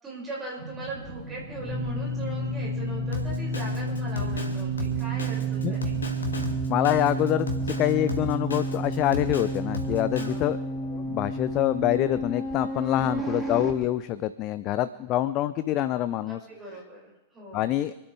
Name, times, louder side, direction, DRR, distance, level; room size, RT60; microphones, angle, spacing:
voice 1, 0.0-6.0 10.2-10.4 12.9-13.3 16.3-17.6, right 2 dB, 20° right, -5 dB, 5.9 m, -40 dB
sound 1, 0.6-6.5, right 3 dB, 70° right, 3.6 m, -42 dB
sound 2, 0.9-13.7, right 2 dB, 5° right, 2.6 m, -31 dB
Drum kit, 3.1-10.4, left 2 dB, 75° left, 1.8 m, -34 dB
voice 2, 6.7-10.6 10.9-16.4 17.5-17.9, left 13 dB, 40° left, 14 dB, 0.5 m, -26 dB
27.5 x 10.0 x 3.4 m, 1.0 s
figure-of-eight pair, 90°, 0 cm